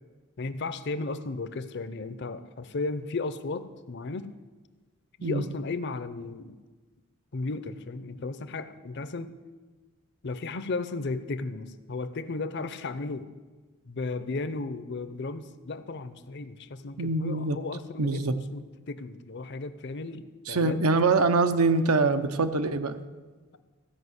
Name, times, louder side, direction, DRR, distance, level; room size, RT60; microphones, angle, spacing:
voice 1, 0.4-4.3 5.2-6.6 7.3-9.3 10.2-13.3 13.8-18.2 18.5-20.8, left 3 dB, 50° left, 13 dB, 0.6 m, -35 dB
voice 2, 17.0-17.6 18.0-18.3 20.5-23.0, right 3 dB, 80° right, 9 dB, 0.7 m, -24 dB
15.0 x 5.6 x 8.1 m, 1.3 s
head